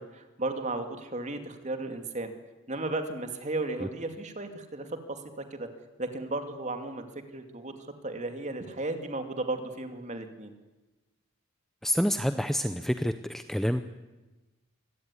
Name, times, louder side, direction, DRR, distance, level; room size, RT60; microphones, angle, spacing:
voice 1, 0.0-2.3 2.7-5.7 6.0-7.1 7.3-7.7 8.0-10.5, right 2 dB, 35° right, 6 dB, 2.5 m, -34 dB
voice 2, 11.8-13.8, equal, ahead, 9 dB, 0.7 m, -28 dB
24.5 x 17.0 x 9.8 m, 1.1 s
head